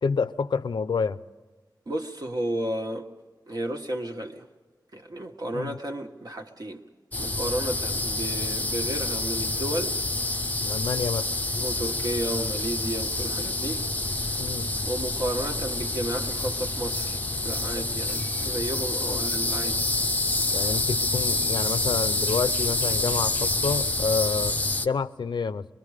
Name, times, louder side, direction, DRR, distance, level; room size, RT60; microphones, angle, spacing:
voice 1, 0.0-1.2 5.5-5.8 10.6-11.3 14.4-14.7 19.1-19.2 20.5-24.6 24.8-25.7, left 5 dB, 85° left, 0.5 m, -28 dB
voice 2, 1.9-3.1 3.5-4.5 4.9-6.8 7.2-9.9 11.5-13.9 14.8-19.8, right 1 dB, 60° right, 1.5 m, -32 dB
sound 1, 7.1-24.9, left 2 dB, 20° left, 0.5 m, -27 dB
24.0 x 22.0 x 4.9 m
wide cardioid pair, 100°, 8 cm